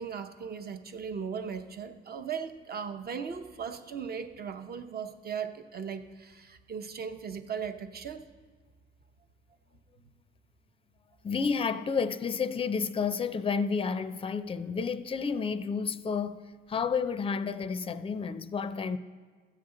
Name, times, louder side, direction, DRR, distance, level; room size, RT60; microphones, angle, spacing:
voice 1, 0.0-8.2, right 6 dB, 50° right, 0.7 m, -38 dB
voice 2, 11.2-16.4 16.7-19.0, left 5 dB, 25° left, 0.4 m, -30 dB
14.5 x 7.4 x 3.8 m
cardioid pair, 95°, 21 cm